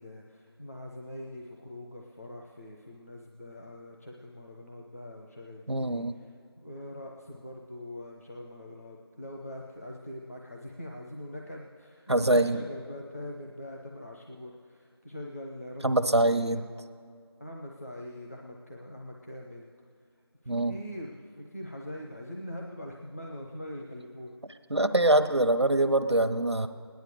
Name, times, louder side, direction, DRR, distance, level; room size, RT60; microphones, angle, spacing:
voice 1, 0.0-16.6 17.4-19.7 20.4-24.4, left 1 dB, 35° left, -1 dB, 1.0 m, -43 dB
voice 2, 5.7-6.1 12.1-12.6 15.8-16.6 20.5-20.7 24.7-26.7, right 1 dB, 85° right, 6 dB, 1.0 m, -24 dB
17.5 x 10.5 x 6.8 m, 2.3 s
figure-of-eight pair, 175°, 14 cm